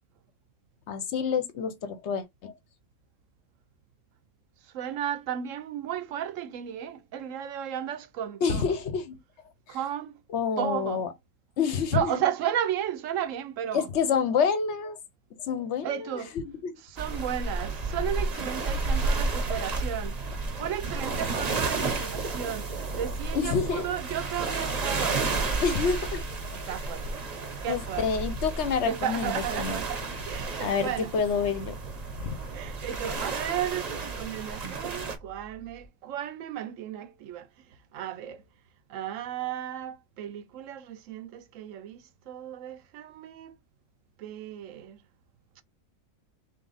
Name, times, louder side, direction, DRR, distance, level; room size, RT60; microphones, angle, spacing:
voice 1, 0.9-2.5 8.4-9.2 9.7-9.8 10.3-11.1 11.6-12.2 13.7-15.0 15.5-16.7 23.3-23.8 25.6-26.2 26.5-26.7 27.7-29.8 30.6-31.7 32.2-32.4, left 6 dB, 60° left, 1.0 m, -28 dB
voice 2, 4.6-8.7 9.7-10.2 10.6-11.0 11.9-13.9 15.8-16.3 16.8-20.2 20.6-25.3 26.5-27.2 27.6-28.3 28.9-31.1 32.5-37.5 37.9-38.4 38.9-43.6 44.2-45.0 45.6-45.7, right 10 dB, 75° right, 0.9 m, -34 dB
sound 1, 17.0-35.2, right 3 dB, 35° right, 0.7 m, -32 dB
sound 2, 20.2-35.9, right 2 dB, 20° left, 0.8 m, -42 dB
3.6 x 2.8 x 3.9 m
omnidirectional pair, 1.4 m